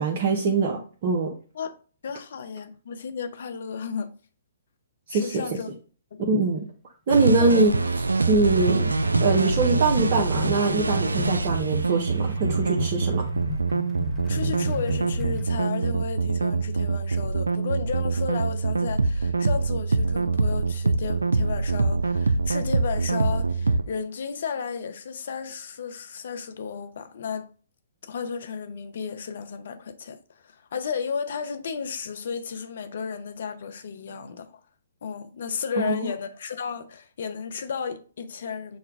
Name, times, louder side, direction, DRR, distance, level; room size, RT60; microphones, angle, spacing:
voice 1, 0.0-1.3 5.1-5.4 6.3-6.7 7.1-7.7 8.3-8.9 9.2-13.3 35.8-36.0, right 3 dB, 45° right, 0.7 m, -23 dB
voice 2, 2.0-4.1 5.1-5.7 6.1-6.2 7.4-7.6 14.2-27.5 28.0-34.6 35.0-38.8, left 6 dB, 60° left, 0.6 m, -33 dB
sound 1, 7.1-23.8, right 3 dB, 90° right, 0.3 m, -25 dB
sound 2, 8.0-15.6, left 6 dB, ahead, 0.7 m, -36 dB
6.4 x 2.3 x 3.5 m
figure-of-eight pair, 130°, 0 cm